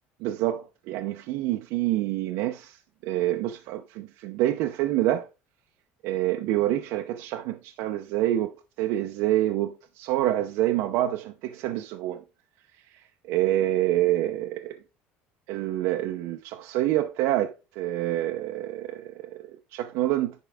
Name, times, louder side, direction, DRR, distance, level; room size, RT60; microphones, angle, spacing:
voice 1, 0.2-2.8 3.0-5.3 6.0-12.2 12.9-13.0 13.3-14.8 15.5-20.3, right 14 dB, 65° right, 0.7 m, -27 dB
10.5 x 4.7 x 3.6 m
cardioid pair, 170°, 5 cm